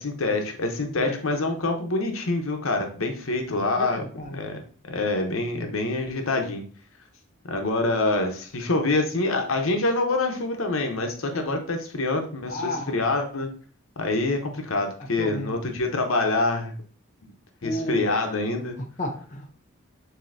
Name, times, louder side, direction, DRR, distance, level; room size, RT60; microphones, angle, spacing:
voice 1, 0.0-4.6 4.9-6.6 7.4-13.5 14.0-16.7 17.6-18.8, left 2 dB, 80° left, 4 dB, 0.8 m, -26 dB
voice 2, 0.8-1.2 3.8-4.4 11.3-11.6 12.5-13.0 15.2-15.6 17.6-18.0 19.0-19.6, left 1 dB, 35° left, 1 dB, 0.6 m, -32 dB
7.5 x 2.8 x 2.6 m, 0.42 s
head